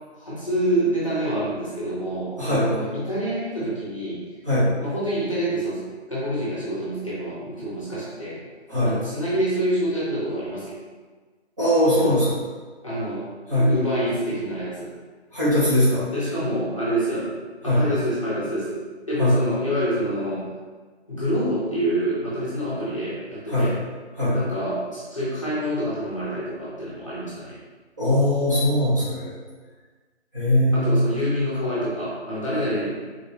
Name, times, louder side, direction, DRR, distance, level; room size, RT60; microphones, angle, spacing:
voice 1, 0.2-4.3 4.8-8.4 8.8-10.8 12.8-14.9 16.1-20.5 21.1-23.7 24.3-27.6 30.7-33.1, right 1 dB, 30° left, -8 dB, 1.0 m, -27 dB
voice 2, 2.4-2.7 4.4-4.7 8.7-8.9 11.6-12.4 13.5-13.7 15.3-16.0 17.6-17.8 19.2-19.3 23.5-23.7 24.1-24.4 28.0-29.3 30.3-31.0, left 1 dB, 15° right, -14 dB, 1.5 m, -20 dB
3.8 x 3.6 x 3.4 m, 1.4 s
figure-of-eight pair, 180°, 34 cm